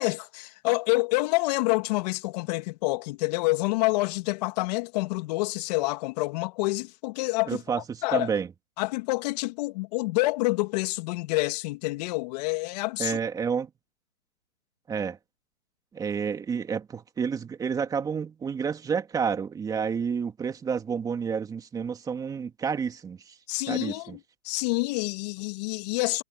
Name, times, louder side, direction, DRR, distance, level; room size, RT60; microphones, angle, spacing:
voice 1, 0.0-7.6 8.0-8.3 8.8-13.2 23.5-24.2 24.4-26.2, left 23 dB, 30° left, 2.6 m, -27 dB
voice 2, 7.5-8.5 13.0-13.7 14.9-15.2 15.9-23.3 23.7-24.2, right 6 dB, 10° right, 2.6 m, -30 dB
hypercardioid pair, 155°, 41 cm